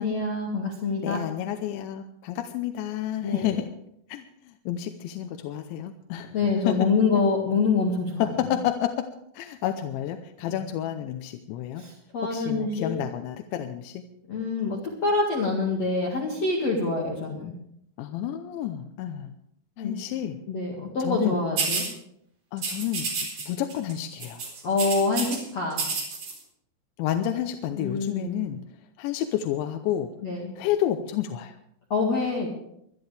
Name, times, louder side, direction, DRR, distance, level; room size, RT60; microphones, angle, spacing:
voice 1, 0.0-1.2 3.2-3.5 6.3-8.5 10.5-10.6 11.8-13.0 14.3-17.5 19.8-20.0 20.5-21.9 24.6-25.8 27.8-28.4 30.2-30.6 31.9-32.5, left 3 dB, 50° left, -1 dB, 2.3 m, -26 dB
voice 2, 1.0-3.7 4.1-6.4 6.6-6.9 7.1-7.2 8.2-8.9 9.3-11.8 12.2-14.0 18.0-19.3 19.8-20.4 21.0-21.4 22.5-23.1 23.5-24.4 27.0-28.6 29.0-30.1 30.6-31.6, left 11 dB, 80° left, 7 dB, 3.0 m, -30 dB
sound 1, 21.6-21.9 22.6-23.5 23.7-23.9 24.2-25.4 25.7-26.3, right 4 dB, 50° right, 5.7 m, -29 dB
23.5 x 12.5 x 3.4 m, 0.75 s
omnidirectional pair, 5.3 m